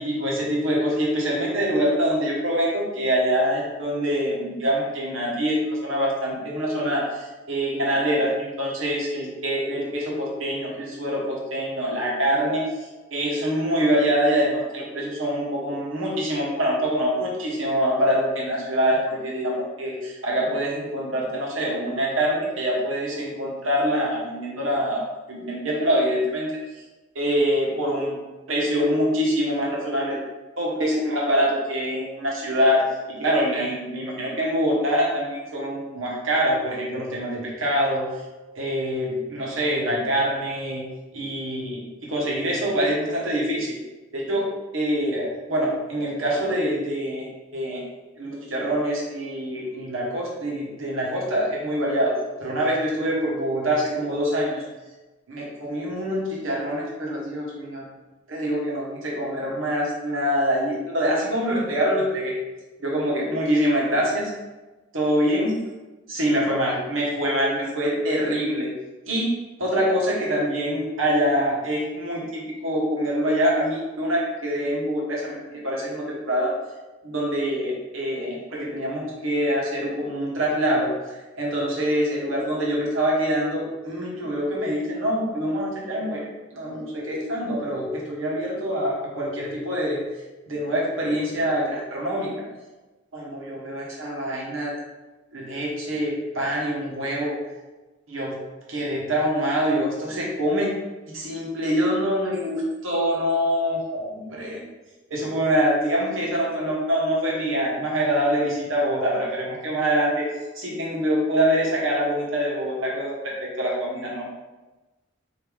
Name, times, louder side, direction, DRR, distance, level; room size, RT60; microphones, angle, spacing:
voice 1, 0.0-25.0 25.3-26.5 27.1-28.2 28.5-30.2 30.6-32.8 33.1-38.1 38.5-40.9 41.1-43.8 44.1-44.5 44.7-47.8 48.2-52.1 52.4-54.6 55.3-57.8 58.3-62.3 62.8-64.3 64.9-65.5 66.1-68.7 69.1-69.3 69.6-76.5 77.0-90.0 90.5-92.4 93.1-94.7 95.3-97.3 98.1-98.4 98.7-100.7 101.1-104.6 105.1-110.3 110.5-114.3, equal, 85° right, -4 dB, 1.4 m, -25 dB
3.5 x 3.0 x 4.7 m, 1.1 s
head